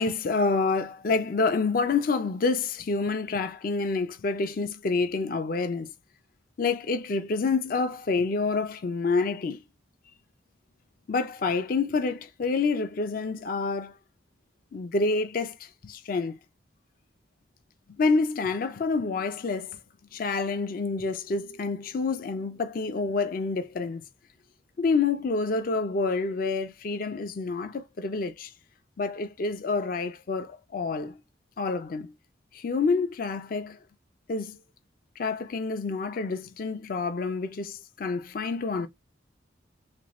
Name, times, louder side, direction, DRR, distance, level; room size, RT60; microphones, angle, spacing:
voice 1, 0.0-5.9 6.6-9.6 11.1-14.0 14.7-16.4 18.0-19.8 20.1-24.0 24.8-28.5 29.0-31.2 31.6-32.1 32.5-33.8 34.3-34.6 35.2-38.9, left 4 dB, 50° left, 0.4 m, -28 dB
3.4 x 2.5 x 2.9 m
head